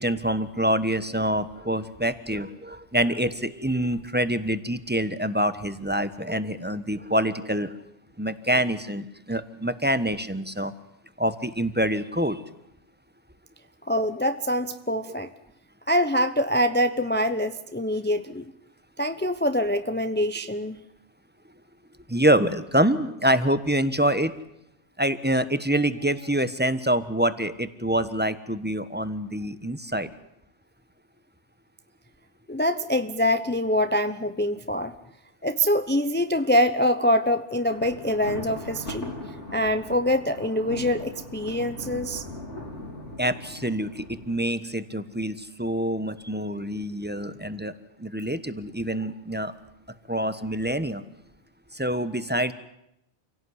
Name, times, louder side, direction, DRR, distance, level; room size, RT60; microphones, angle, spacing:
voice 1, 0.0-7.7 8.2-10.7 11.2-12.4 22.1-24.3 25.0-30.1 43.2-47.7 48.0-49.5 50.1-51.0 51.7-52.5, right 1 dB, 10° right, 12 dB, 1.2 m, -26 dB
voice 2, 13.9-15.3 15.9-18.5 19.0-20.8 32.5-34.9 35.4-39.1 39.5-42.2, equal, 10° left, 10 dB, 0.9 m, -24 dB
Thunder, 37.5-44.8, left 1 dB, 80° left, 4.8 m, -39 dB
27.5 x 17.5 x 9.8 m, 0.82 s
omnidirectional pair, 1.2 m